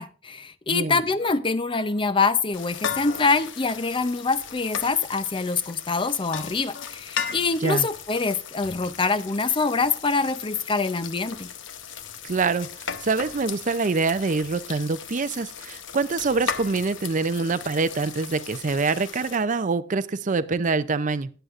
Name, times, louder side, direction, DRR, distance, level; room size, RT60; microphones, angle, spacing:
voice 1, 0.0-11.5, left 4 dB, 25° left, 0.6 m, -25 dB
voice 2, 0.7-1.0 7.6-7.9 12.2-21.3, right 4 dB, 40° right, 0.5 m, -25 dB
sound 1, 2.5-19.4, left 7 dB, 70° left, 0.8 m, -37 dB
17.5 x 7.9 x 2.5 m
head